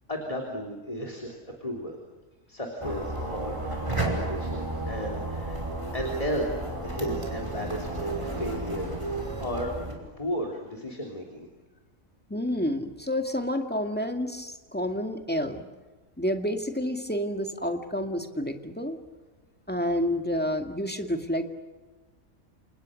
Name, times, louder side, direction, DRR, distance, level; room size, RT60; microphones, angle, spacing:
voice 1, 0.1-2.0 2.5-5.6 5.9-9.8 10.2-11.5, equal, 25° left, 1 dB, 3.5 m, -34 dB
sound 1, 2.8-9.9, right 2 dB, 20° right, 5.6 m, -32 dB
voice 2, 12.3-15.6 16.2-19.0 19.7-21.4, equal, 5° left, 5 dB, 2.1 m, -29 dB
29.5 x 28.5 x 6.6 m, 1.3 s
omnidirectional pair, 1.4 m